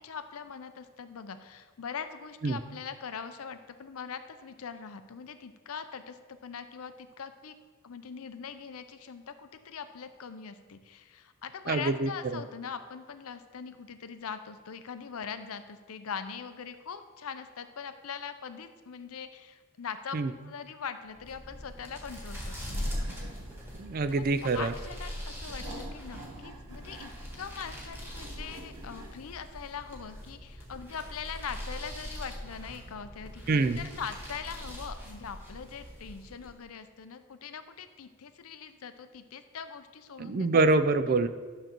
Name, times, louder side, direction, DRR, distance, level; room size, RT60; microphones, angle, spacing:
voice 1, 0.0-7.5 7.8-23.4 24.1-27.1 27.4-40.5, left 6 dB, 70° left, 10 dB, 0.5 m, -42 dB
voice 2, 11.7-12.4 20.1-20.3 23.8-24.7 33.5-33.8 40.2-41.3, right 3 dB, 40° right, 11 dB, 0.3 m, -25 dB
sound 1, 21.1-36.6, equal, 10° right, 1.4 m, -41 dB
sound 2, 22.7-29.2, right 1 dB, 85° right, 0.9 m, -49 dB
11.5 x 6.6 x 3.0 m, 1.4 s
head